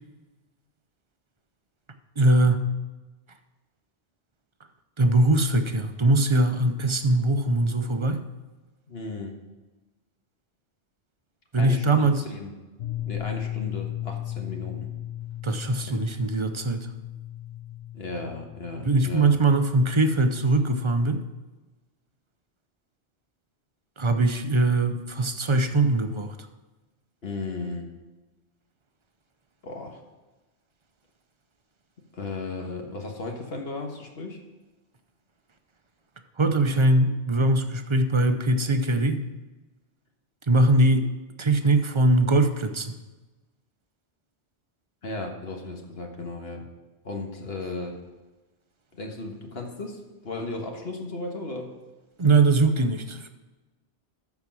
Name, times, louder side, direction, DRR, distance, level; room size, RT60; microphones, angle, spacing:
voice 1, 2.2-2.7 5.0-8.2 11.5-12.2 15.4-16.9 18.8-21.2 24.0-26.3 36.4-39.2 40.5-41.1 41.4-42.9 52.2-53.3, right 2 dB, 30° right, 7 dB, 0.7 m, -21 dB
voice 2, 8.9-9.4 11.5-12.5 13.0-14.9 15.9-16.0 17.9-19.4 27.2-27.9 29.6-30.0 32.1-34.4 45.0-46.7 47.0-48.0 48.9-51.7, left 3 dB, 65° left, 2 dB, 1.6 m, -35 dB
sound 1, 12.8-19.6, left 13 dB, 85° left, 0.9 m, -36 dB
13.5 x 4.8 x 6.1 m, 1.2 s
omnidirectional pair, 1.1 m